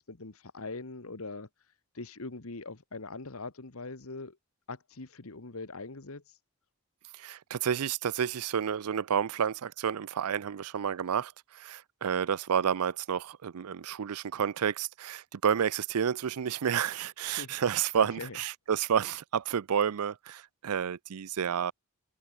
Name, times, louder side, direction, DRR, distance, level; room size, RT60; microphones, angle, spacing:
voice 1, 0.0-1.5 1.9-4.4 4.7-6.4 17.3-17.6 18.0-18.4, left 3 dB, 75° left, 1.5 m, -42 dB
voice 2, 7.2-21.7, right 8 dB, 90° right, 0.5 m, -30 dB
head